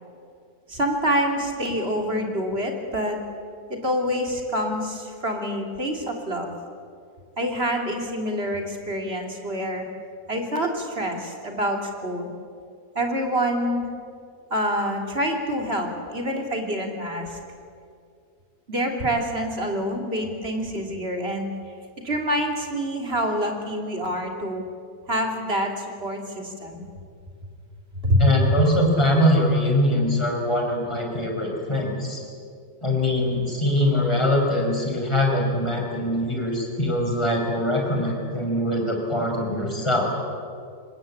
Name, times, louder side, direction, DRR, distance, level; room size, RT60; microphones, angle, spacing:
voice 1, 0.7-3.2 3.7-6.5 7.4-9.9 10.3-12.3 12.9-13.9 14.5-17.4 18.7-21.5 22.0-24.6 25.1-26.8 28.0-28.3, equal, 40° right, 3 dB, 3.4 m, -26 dB
voice 2, 28.2-32.2 32.8-40.1, left 1 dB, 15° left, 0 dB, 5.2 m, -22 dB
25.5 x 20.5 x 8.7 m, 2.3 s
omnidirectional pair, 1.7 m